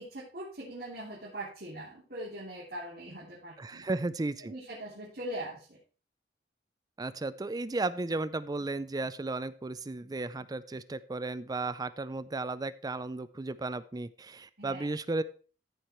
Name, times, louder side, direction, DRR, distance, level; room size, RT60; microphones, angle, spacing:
voice 1, 0.0-3.8 4.4-5.8 14.6-14.9, right 1 dB, 60° right, -8 dB, 3.2 m, -41 dB
voice 2, 3.6-4.5 7.0-15.2, right 2 dB, 20° right, 14 dB, 0.4 m, -34 dB
14.5 x 4.9 x 4.4 m, 0.38 s
head